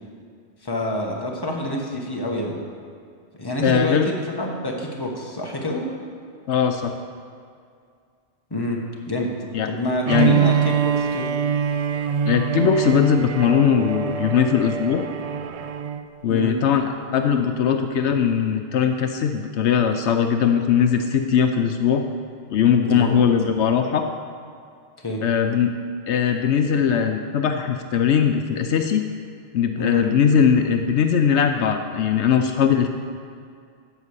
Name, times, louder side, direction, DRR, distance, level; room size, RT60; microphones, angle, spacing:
voice 1, 0.6-2.6 3.4-5.9 8.5-8.8 9.1-9.3 9.7-11.3 16.3-16.6 22.8-23.2 25.0-25.2 29.8-30.1, left 1 dB, 20° left, -1 dB, 1.4 m, -27 dB
voice 2, 3.6-4.1 6.5-7.0 9.5-9.7 10.1-10.4 12.2-15.1 16.2-16.9 17.1-22.0 22.5-24.1 25.2-25.7 26.1-29.0 29.5-32.9, left 7 dB, 75° left, 6 dB, 0.9 m, -20 dB
Bowed string instrument, 10.0-16.1, right 8 dB, 65° right, 0.3 m, -24 dB
12.5 x 5.0 x 8.1 m, 2.3 s
omnidirectional pair, 1.2 m